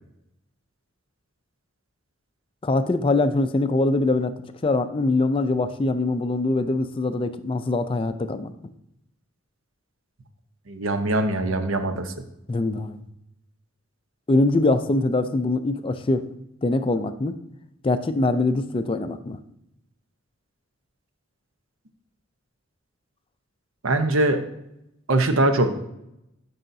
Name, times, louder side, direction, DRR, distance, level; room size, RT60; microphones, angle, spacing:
voice 1, 2.6-4.4 4.6-8.5 12.5-13.1 14.3-16.3 16.6-17.4 17.8-19.4, left 2 dB, 25° left, 10 dB, 0.4 m, -23 dB
voice 2, 10.7-12.1 23.8-24.4 25.1-25.7, right 2 dB, 75° right, 7 dB, 0.8 m, -22 dB
11.5 x 5.6 x 2.7 m, 0.84 s
head